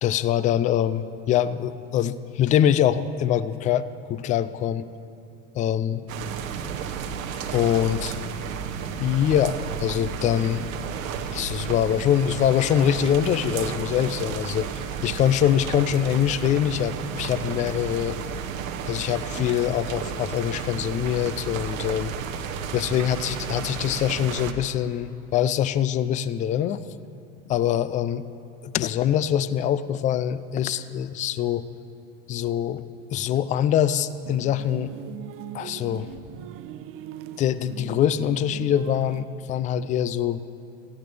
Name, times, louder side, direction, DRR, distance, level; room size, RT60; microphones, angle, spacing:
voice 1, 0.0-4.9 5.6-6.1 7.5-8.1 9.0-10.7 11.3-18.2 18.9-22.1 22.7-26.8 27.5-28.2 28.6-31.6 32.3-32.8 33.1-34.9 35.5-36.2 37.4-40.4, left 10 dB, 20° left, 15 dB, 0.3 m, -24 dB
sound 1, 6.1-24.5, right 7 dB, 70° right, 1.0 m, -32 dB
sound 2, 34.2-39.3, right 11 dB, 35° right, 0.5 m, -40 dB
19.0 x 15.0 x 3.4 m, 2.7 s
hypercardioid pair, 80°, 41 cm